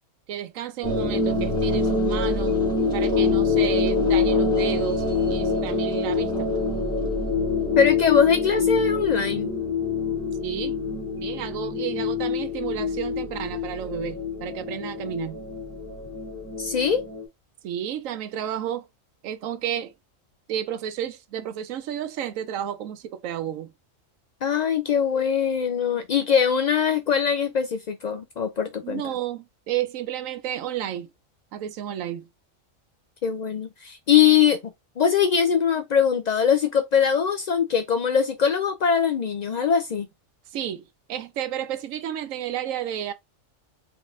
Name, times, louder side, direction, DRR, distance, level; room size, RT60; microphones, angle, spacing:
voice 1, 0.3-2.6 2.9-6.6 10.4-10.7 11.1-15.4 17.6-18.9 19.2-19.9 20.5-23.7 28.8-31.1 31.5-32.3 40.5-43.1, right 10 dB, 85° right, 1.0 m, -31 dB
sound 1, 0.8-17.2, left 4 dB, 5° left, 1.9 m, -25 dB
voice 2, 7.8-9.5 16.6-17.0 24.4-29.0 33.2-34.6 35.0-40.1, left 7 dB, 85° left, 0.3 m, -22 dB
3.9 x 3.6 x 2.5 m
omnidirectional pair, 1.3 m